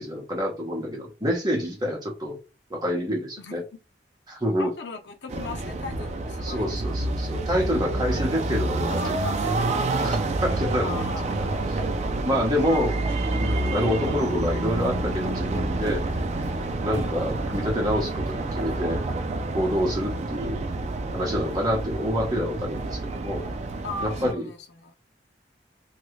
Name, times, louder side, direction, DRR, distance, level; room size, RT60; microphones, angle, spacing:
voice 1, 0.0-2.4 2.7-3.6 4.3-4.7 6.4-9.0 9.4-9.5 10.0-11.0 11.4-11.8 12.2-12.9 13.3-16.0 16.8-19.0 19.5-20.6 21.1-23.4 24.0-24.5, equal, 20° right, 1.0 m, -27 dB
voice 2, 4.6-6.8 9.0-9.5 10.7-11.3 12.7-13.1 23.8-24.9, left 3 dB, 75° left, 0.7 m, -38 dB
sound 1, 5.3-24.3, right 2 dB, 40° right, 0.3 m, -28 dB
3.1 x 2.4 x 3.1 m
head